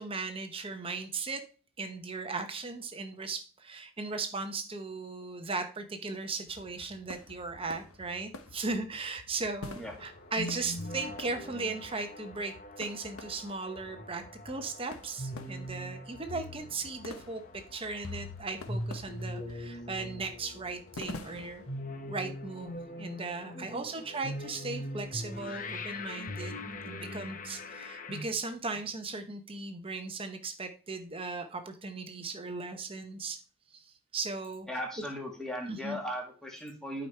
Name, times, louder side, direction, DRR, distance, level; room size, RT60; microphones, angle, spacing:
voice 1, 0.0-1.4 1.8-21.6 22.1-26.6 26.9-33.4 33.7-34.7 35.7-36.0, right 3 dB, 25° right, 7 dB, 0.8 m, -37 dB
sound 1, 6.5-21.8, left 2 dB, 90° left, 1.2 m, -49 dB
sound 2, 9.9-28.2, left 1 dB, 40° left, 1.0 m, -42 dB
voice 2, 23.5-23.9 34.7-37.1, equal, 5° left, -1 dB, 2.1 m, -38 dB
12.0 x 5.1 x 4.4 m, 0.38 s
head